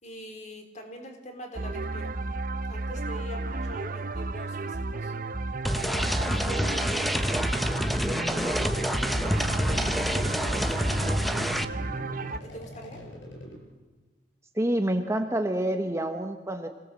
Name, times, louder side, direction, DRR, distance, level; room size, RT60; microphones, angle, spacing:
voice 1, 0.0-2.2 2.7-5.1 5.8-11.5 12.3-13.1, equal, 40° left, 4 dB, 3.8 m, -44 dB
sound 1, 1.6-12.4, right 2 dB, 45° right, 0.9 m, -33 dB
sound 2, 5.7-11.7, equal, ahead, 0.8 m, -27 dB
sound 3, 8.1-13.6, equal, 75° left, 5.6 m, -43 dB
voice 2, 14.5-16.7, right 1 dB, 15° right, 5 dB, 1.2 m, -27 dB
26.5 x 17.5 x 7.6 m, 1.3 s
head